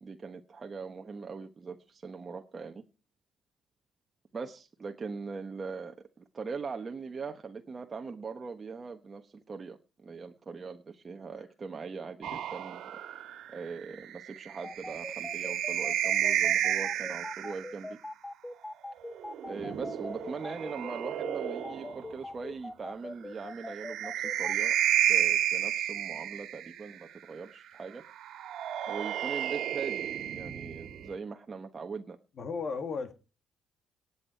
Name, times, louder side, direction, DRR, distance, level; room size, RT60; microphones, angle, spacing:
voice 1, 0.0-2.8 4.3-12.9 13.5-18.0 19.5-24.8 25.1-28.0 28.9-32.2, right 5 dB, 35° right, 4 dB, 1.2 m, -41 dB
sound 1, 12.2-17.8 19.1-22.1 23.5-26.9 28.2-31.1, right 11 dB, 70° right, 1.9 m, -31 dB
sound 2, 14.6-24.5, left 2 dB, 15° left, 0.9 m, -41 dB
voice 2, 32.4-33.1, left 4 dB, 55° left, 8 dB, 2.3 m, -34 dB
18.0 x 8.3 x 4.6 m, 0.33 s
supercardioid pair, 65°, 0 cm